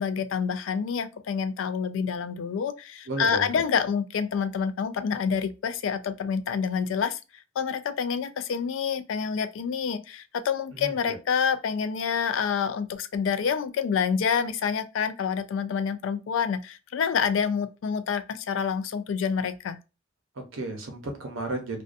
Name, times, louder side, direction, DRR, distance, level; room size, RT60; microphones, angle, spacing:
voice 1, 0.0-7.2 7.6-19.8, left 6 dB, 75° left, 0.3 m, -27 dB
voice 2, 3.1-3.6 10.7-11.2 20.3-21.8, right 2 dB, 85° right, 0.8 m, -33 dB
2.5 x 2.2 x 2.5 m
head